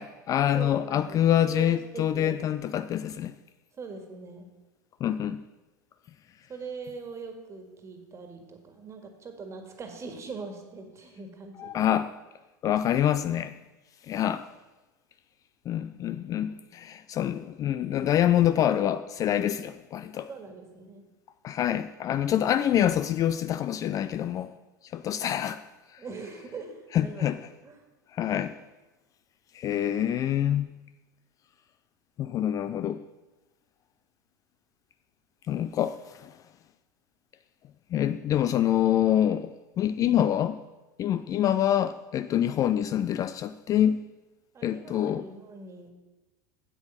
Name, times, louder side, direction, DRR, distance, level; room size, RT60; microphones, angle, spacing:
voice 1, 0.0-3.3 5.0-5.5 11.6-12.1 12.6-13.5 14.1-14.5 15.7-20.3 21.4-24.5 24.8-25.7 25.9-26.0 26.9-27.4 28.1-28.6 29.5-30.7 32.2-33.1 35.5-36.4 37.9-40.6 41.0-44.1 44.6-45.3, left 11 dB, 35° left, 0.3 m, -26 dB
voice 2, 0.5-2.4 3.7-4.5 6.5-11.9 20.3-21.0 26.0-27.3 27.6-27.8 44.5-45.9, right 4 dB, 30° right, 1.8 m, -42 dB
8.1 x 7.8 x 5.7 m
hypercardioid pair, 85°, 10 cm